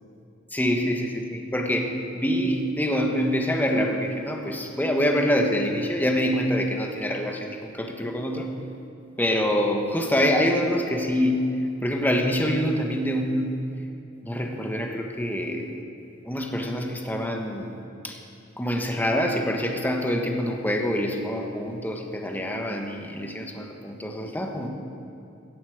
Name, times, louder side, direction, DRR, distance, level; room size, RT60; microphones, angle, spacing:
voice 1, 0.5-8.5 9.2-11.5 11.8-13.6 14.2-15.8 16.2-17.7 18.0-18.2 18.6-24.7, equal, 10° left, 2 dB, 1.3 m, -25 dB
16.0 x 14.5 x 4.9 m, 2.7 s
head